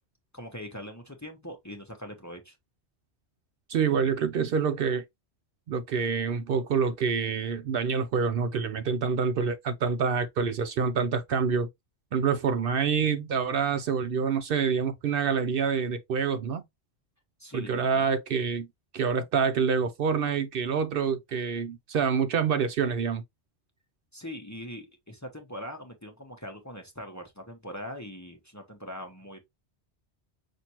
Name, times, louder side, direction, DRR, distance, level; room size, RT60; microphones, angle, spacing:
voice 1, 0.3-2.6 17.4-18.0 24.1-29.4, equal, 15° left, 0.8 m, -41 dB
voice 2, 3.7-5.0 5.7-11.7 12.1-16.6 17.5-18.7 18.9-23.2, right 6 dB, 65° right, 0.7 m, -27 dB
5.8 x 2.6 x 2.8 m
omnidirectional pair, 1.1 m